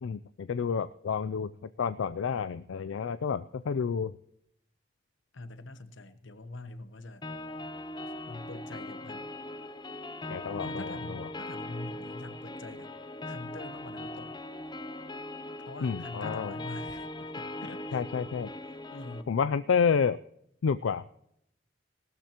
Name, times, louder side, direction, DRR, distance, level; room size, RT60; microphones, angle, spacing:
voice 1, 0.0-4.1 10.3-11.3 15.8-16.5 17.9-18.5 19.3-20.2 20.6-21.0, left 6 dB, 90° left, 14 dB, 0.4 m, -30 dB
voice 2, 5.3-7.2 8.3-9.3 9.6-9.8 10.6-12.9 13.3-14.3 15.6-18.0 18.7-19.3, left 2 dB, 75° left, 12 dB, 1.0 m, -44 dB
sound 1, 7.2-19.2, left 1 dB, 25° left, 0.6 m, -40 dB
18.5 x 12.5 x 3.0 m, 0.75 s
head